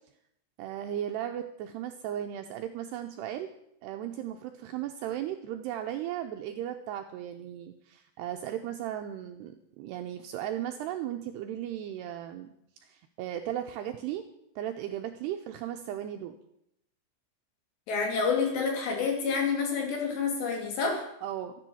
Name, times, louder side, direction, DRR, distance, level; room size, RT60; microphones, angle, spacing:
voice 1, 0.6-3.5 3.8-12.5 12.8-14.2 14.6-16.4 21.2-21.6, right 11 dB, 80° right, 5 dB, 2.4 m, -36 dB
voice 2, 17.9-21.1, left 5 dB, 65° left, 1 dB, 4.7 m, -28 dB
13.5 x 10.0 x 7.1 m, 0.79 s
omnidirectional pair, 5.4 m